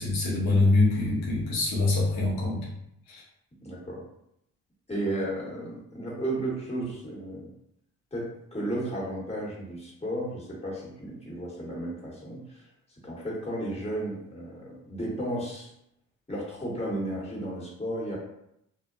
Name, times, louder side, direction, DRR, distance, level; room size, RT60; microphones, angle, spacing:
voice 1, 0.0-2.7 3.1-3.2, left 2 dB, 85° left, -5 dB, 0.8 m, -24 dB
voice 2, 3.6-4.0 4.9-7.5 8.1-12.6 13.0-15.7 16.3-18.2, right 1 dB, 15° left, -6 dB, 1.3 m, -33 dB
2.7 x 2.2 x 2.5 m, 0.78 s
supercardioid pair, 45°, 35 cm